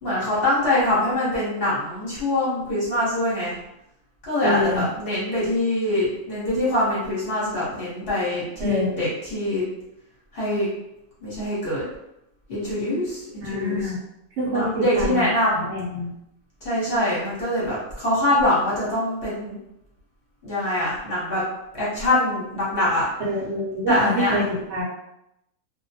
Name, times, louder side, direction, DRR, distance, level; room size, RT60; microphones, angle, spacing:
voice 1, 0.0-3.6 4.3-9.6 10.3-10.7 11.2-11.8 12.5-13.9 14.5-15.6 16.6-19.6 20.4-21.4 21.7-23.1 23.9-24.4, left 1 dB, 45° left, -8 dB, 0.9 m, -24 dB
voice 2, 4.4-4.9 8.6-8.9 13.4-14.0 14.4-16.1 23.2-24.8, left 1 dB, 65° right, -7 dB, 0.8 m, -26 dB
2.4 x 2.1 x 2.7 m, 0.85 s
omnidirectional pair, 1.6 m